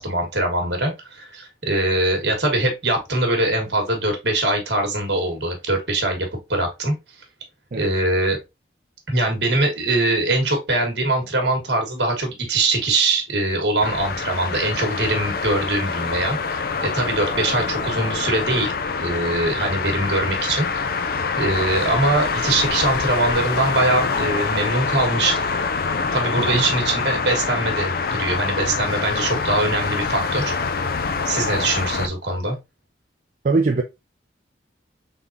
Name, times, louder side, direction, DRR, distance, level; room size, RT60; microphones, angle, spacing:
voice 1, 0.0-7.0 7.7-8.4 9.1-16.4 16.8-18.7 19.0-20.7 21.4-25.4 26.1-30.5 31.2-32.6, right 2 dB, 65° right, 1.4 m, -22 dB
sound 1, 13.8-32.1, left 4 dB, 50° left, 0.4 m, -25 dB
voice 2, 33.4-33.8, right 3 dB, 45° right, 0.4 m, -21 dB
3.8 x 3.6 x 2.6 m
head